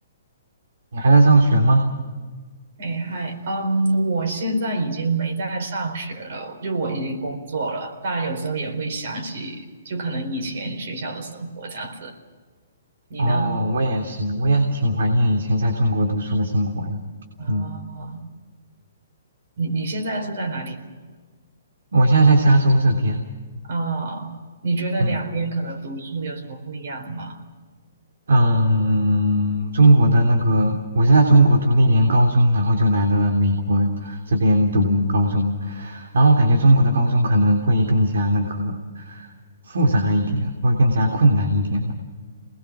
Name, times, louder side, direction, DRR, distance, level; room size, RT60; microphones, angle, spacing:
voice 1, 0.9-1.8 13.2-17.0 17.5-17.7 21.9-23.2 25.0-25.2 28.3-39.3 39.6-41.9, right 1 dB, 80° right, 3 dB, 3.2 m, -18 dB
voice 2, 2.8-12.2 13.1-13.6 17.4-18.2 19.6-20.8 23.6-24.3 24.6-27.4 34.7-34.9, right 2 dB, 50° right, 5 dB, 4.3 m, -27 dB
28.5 x 20.5 x 6.2 m, 1.5 s
hypercardioid pair, 175°, 0 cm